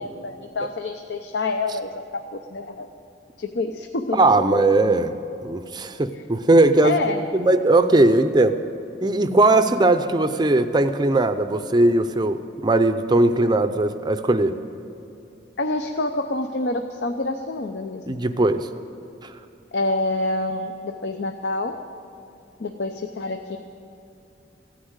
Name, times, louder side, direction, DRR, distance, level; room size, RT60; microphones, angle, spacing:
voice 1, 0.0-2.9 3.4-4.2 6.1-6.2 6.8-7.3 15.6-18.2 19.7-21.7 22.6-23.6, left 2 dB, 60° left, 6 dB, 0.7 m, -27 dB
voice 2, 4.1-5.1 5.4-7.0 7.3-8.6 9.0-14.5 18.1-18.7 19.2-19.3, right 2 dB, 25° right, 10 dB, 0.5 m, -19 dB
16.0 x 10.0 x 8.1 m, 2.8 s
head